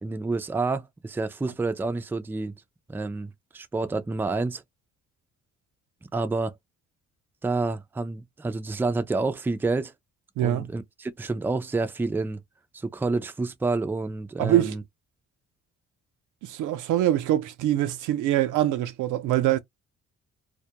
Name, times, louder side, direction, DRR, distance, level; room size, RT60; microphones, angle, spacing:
voice 1, 0.0-2.5 2.9-4.6 6.0-6.5 7.4-9.9 10.4-12.4 12.7-14.8, right 3 dB, 5° right, 0.3 m, -29 dB
voice 2, 10.4-10.7 14.4-14.8 16.4-19.6, right 13 dB, 80° right, 0.5 m, -24 dB
2.3 x 2.1 x 2.8 m
cardioid pair, 90°, 30 cm